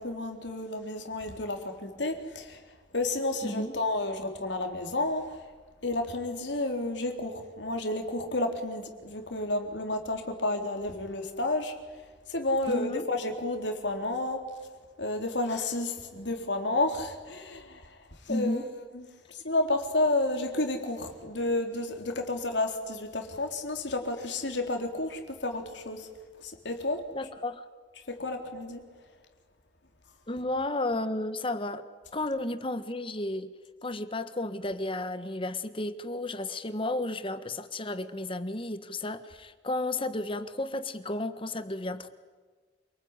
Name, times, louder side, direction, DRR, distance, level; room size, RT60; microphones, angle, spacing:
voice 1, 0.0-2.6 2.9-5.5 5.8-11.8 12.3-14.4 15.0-18.6 18.9-19.0 19.3-26.1 26.4-27.1 28.1-28.8, left 2 dB, 75° left, 4 dB, 3.8 m, -31 dB
voice 2, 3.4-3.7 12.7-13.0 18.3-18.6 27.1-27.6 30.3-31.8 32.1-33.5 33.8-42.1, left 2 dB, 30° left, 11 dB, 1.5 m, -33 dB
28.5 x 20.5 x 9.8 m, 1.4 s
head